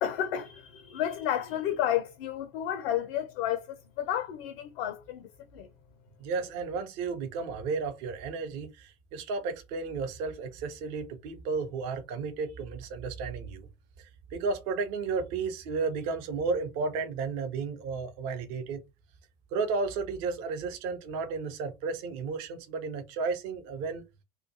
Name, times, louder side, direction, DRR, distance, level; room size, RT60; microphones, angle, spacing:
voice 1, 0.0-5.7, left 11 dB, 55° left, 0.5 m, -31 dB
voice 2, 6.2-13.7 14.0-18.8 19.5-24.0, right 4 dB, 45° right, 0.6 m, -33 dB
2.2 x 2.2 x 2.6 m
figure-of-eight pair, 80°, 37 cm